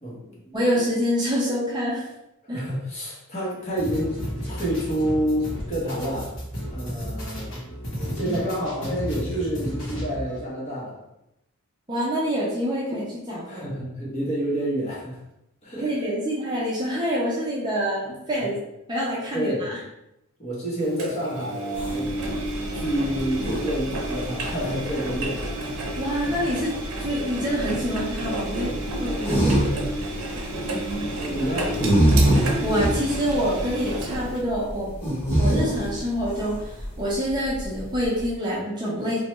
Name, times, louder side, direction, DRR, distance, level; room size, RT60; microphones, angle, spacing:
voice 1, 0.0-0.6 2.5-4.2 4.5-6.4 6.7-7.5 8.1-11.0 13.5-15.2 15.6-15.9 19.3-19.7 20.4-22.1 22.7-25.4 29.3-29.9 31.2-31.8, right 1 dB, 30° left, -5 dB, 0.8 m, -28 dB
voice 2, 0.5-2.1 2.5-2.6 8.2-8.4 11.9-13.8 15.8-18.6 18.9-19.8 26.0-26.7 27.0-29.3 30.7-31.1 32.3-34.9 35.4-39.2, equal, 20° right, -6 dB, 0.6 m, -26 dB
sound 1, 3.8-10.4, equal, 60° left, 1.0 m, -33 dB
Engine, 21.0-34.4, right 1 dB, 90° right, 0.6 m, -31 dB
sound 2, 21.7-38.3, right 1 dB, 10° left, 1.2 m, -26 dB
3.0 x 2.2 x 3.0 m, 0.87 s
head